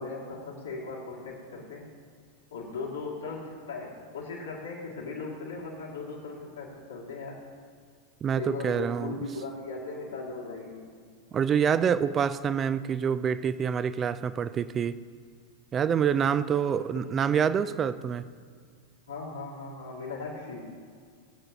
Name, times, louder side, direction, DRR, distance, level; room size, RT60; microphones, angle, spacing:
voice 1, 0.0-1.9 2.5-7.5 8.3-10.9 16.6-17.2 19.1-20.8, left 3 dB, 70° left, -5 dB, 2.5 m, -38 dB
voice 2, 8.2-9.1 11.3-14.9 15.7-18.3, right 7 dB, 25° right, 14 dB, 0.4 m, -26 dB
19.5 x 7.8 x 2.9 m, 2.1 s
figure-of-eight pair, 90°, 0 cm